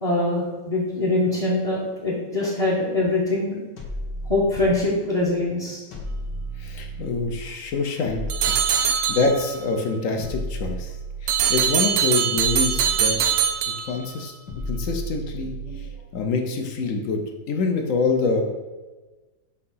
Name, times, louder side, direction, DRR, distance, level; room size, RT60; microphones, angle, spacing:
voice 1, 0.0-3.6 4.3-5.8 15.7-15.8, left 2 dB, 30° left, -5 dB, 0.8 m, -23 dB
sound 1, 3.8-5.1 5.9-7.5 8.0-9.5 10.2-11.8 12.3-13.7 14.5-16.1, right 1 dB, 80° left, 1.7 m, -34 dB
voice 2, 6.6-8.2 8.5-11.0 11.2-13.2 13.8-18.4, left 4 dB, 65° left, 4 dB, 0.9 m, -26 dB
sound 2, 8.3-9.6 11.3-14.3, right 8 dB, 85° right, 1.2 m, -22 dB
6.6 x 2.7 x 5.4 m, 1.2 s
omnidirectional pair, 1.8 m